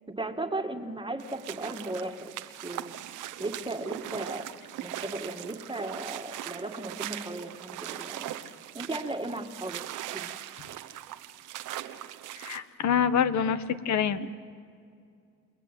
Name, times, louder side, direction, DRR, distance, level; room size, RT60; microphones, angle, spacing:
voice 1, 0.1-2.3 2.6-2.9 3.4-4.5 4.8-8.4 8.7-9.8 10.1-10.3, right 2 dB, 15° right, 5 dB, 2.0 m, -36 dB
sound 1, 1.2-12.6, right 13 dB, 90° right, 1.2 m, -40 dB
voice 2, 12.4-14.3, left 7 dB, 65° left, 12 dB, 1.5 m, -26 dB
29.5 x 21.5 x 9.2 m, 2.3 s
cardioid pair, 90°, 30 cm